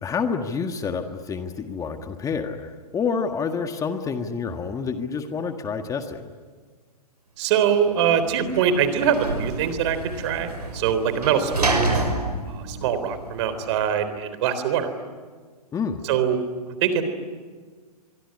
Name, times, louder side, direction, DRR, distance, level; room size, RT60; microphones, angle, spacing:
voice 1, 0.0-6.2 15.7-16.0, left 5 dB, 15° left, 6 dB, 1.7 m, -28 dB
voice 2, 7.4-12.0 12.5-14.9 16.0-16.4 16.8-17.0, right 8 dB, 45° right, 11 dB, 3.7 m, -23 dB
Sliding door / Slam, 7.9-13.7, right 2 dB, 85° right, 6.2 m, -29 dB
25.5 x 24.0 x 9.8 m, 1.5 s
figure-of-eight pair, 115°, 20 cm